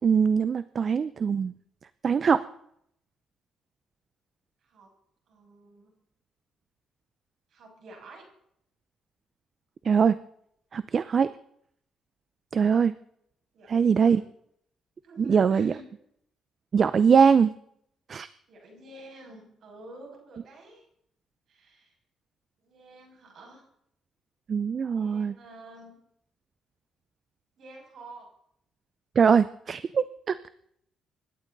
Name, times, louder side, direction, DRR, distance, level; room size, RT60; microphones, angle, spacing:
voice 1, 0.0-1.5 2.0-2.4 9.8-10.2 10.7-11.3 12.5-12.9 13.7-14.2 15.3-15.7 16.7-17.5 18.1-18.3 24.5-25.3 29.2-30.4, right 6 dB, 45° right, 15 dB, 0.6 m, -22 dB
voice 2, 5.3-5.9 7.5-8.3 13.5-14.2 15.0-15.8 17.1-17.2 18.5-20.9 21.5-21.9 22.6-23.6 24.8-26.0 27.6-28.3, right 2 dB, 65° right, 1 dB, 6.6 m, -48 dB
25.0 x 11.5 x 4.0 m, 0.70 s
cardioid pair, 90°, 0 cm